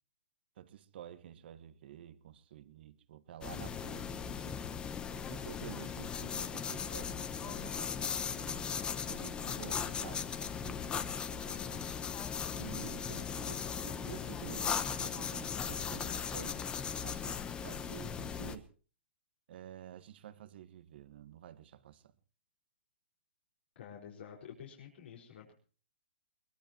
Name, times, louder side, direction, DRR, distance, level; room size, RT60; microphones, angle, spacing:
voice 1, 0.6-4.6 5.3-10.9 11.3-11.9 12.5-13.6 13.8-16.7 17.0-18.7 19.5-22.0, right 11 dB, 60° right, 1.5 m, -50 dB
sound 1, 3.4-18.6, left 7 dB, 15° left, 1.0 m, -38 dB
voice 2, 13.1-13.8 23.7-25.5, left 8 dB, 65° left, 4.9 m, -50 dB
22.5 x 20.5 x 3.0 m
hypercardioid pair, 145°, 6 cm